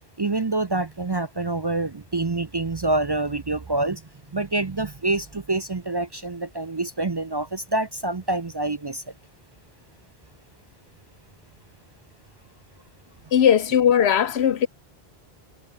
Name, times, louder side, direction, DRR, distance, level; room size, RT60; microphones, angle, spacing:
voice 1, 0.2-4.0 4.3-9.0, right 2 dB, 30° right, 0.5 m, -26 dB
voice 2, 13.3-14.7, left 9 dB, 85° left, 1.1 m, -18 dB
omnidirectional pair, 1.1 m